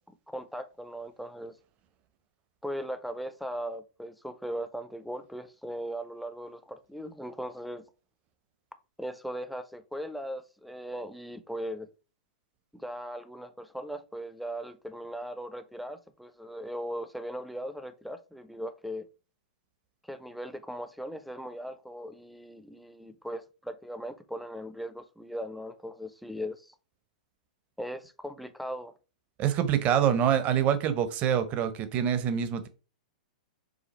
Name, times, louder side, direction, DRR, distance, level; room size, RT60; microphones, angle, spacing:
voice 1, 0.3-1.6 2.6-7.8 9.0-11.9 12.7-19.1 20.1-26.7 27.8-28.9, equal, ahead, 0.6 m, -38 dB
voice 2, 29.4-32.7, right 9 dB, 35° right, 0.8 m, -25 dB
5.0 x 2.3 x 4.1 m
hypercardioid pair, 115°, 4 cm